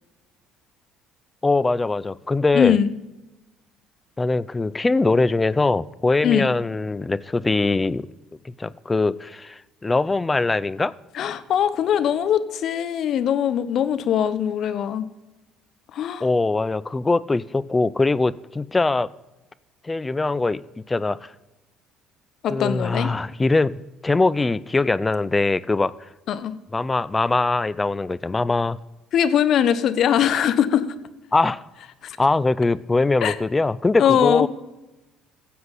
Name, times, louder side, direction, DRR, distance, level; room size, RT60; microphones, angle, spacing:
voice 1, 1.4-2.8 4.2-8.1 8.4-10.9 16.2-19.1 19.8-20.6 20.9-21.3 22.5-23.8 24.0-25.9 26.7-28.8 31.3-31.6 32.2-34.5, left 3 dB, 20° left, 0.4 m, -22 dB
voice 2, 2.5-2.9 6.2-6.5 11.1-15.1 15.9-16.3 22.4-23.1 26.3-26.5 29.1-30.9 32.0-32.2 33.2-33.4 34.0-34.5, left 9 dB, 60° left, 0.8 m, -21 dB
16.0 x 7.8 x 4.0 m
hypercardioid pair, 70°, 0 cm